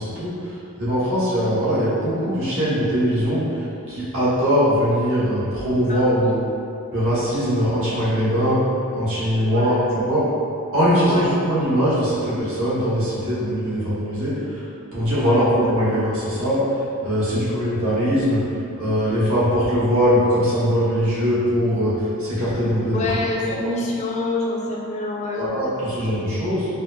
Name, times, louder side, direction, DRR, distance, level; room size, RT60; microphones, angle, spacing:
voice 1, 0.0-6.4 6.9-8.6 8.9-10.2 10.7-14.7 14.9-18.4 18.8-23.0 25.3-26.7, equal, 65° right, -10 dB, 1.1 m, -21 dB
voice 2, 9.4-9.9 11.1-11.2 15.2-15.5 17.3-17.6 22.9-25.5 25.9-26.3, left 2 dB, 30° left, -2 dB, 0.3 m, -27 dB
4.0 x 2.0 x 2.7 m, 2.6 s
head